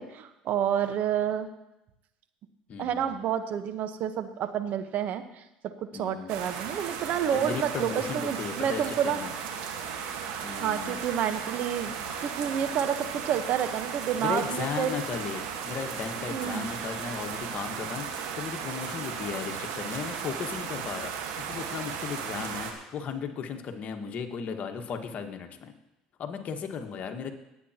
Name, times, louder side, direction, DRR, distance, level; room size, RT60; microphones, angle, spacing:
voice 1, 0.0-1.5 2.8-9.2 10.6-11.9 12.2-14.9 16.3-16.7, right 9 dB, 55° right, 9 dB, 1.1 m, -29 dB
voice 2, 2.7-3.2 5.9-6.4 7.3-9.3 10.4-11.0 14.2-25.7 26.2-27.3, left 6 dB, 50° left, 5 dB, 1.4 m, -36 dB
sound 1, 6.3-22.7, right 7 dB, 75° right, 1.4 m, -36 dB
18.5 x 8.5 x 2.9 m, 0.90 s
hypercardioid pair, 75°, 3 cm